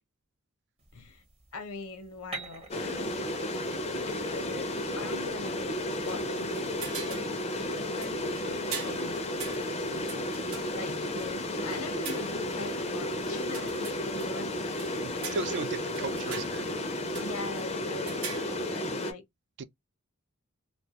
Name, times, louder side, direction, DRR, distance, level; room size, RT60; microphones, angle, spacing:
sound 1, 0.8-17.7, right 3 dB, 25° right, 0.7 m, -52 dB
voice 1, 0.9-1.2 1.5-3.2 4.1-6.8 7.0-7.2 7.7-9.3 9.7-10.2 10.7-15.5 17.1-19.2, left 3 dB, 80° left, 0.7 m, -42 dB
sound 2, 2.7-19.1, left 1 dB, 30° left, 0.4 m, -33 dB
sound 3, 5.9-7.4 7.7-7.8 8.0-12.6 13.2-14.3 14.7-15.7 15.9-16.9 17.1-17.6 17.9-18.8, right 6 dB, 75° right, 0.7 m, -43 dB
voice 2, 15.0-16.6 19.6-19.7, right 4 dB, 50° right, 0.3 m, -36 dB
2.2 x 2.2 x 2.7 m
head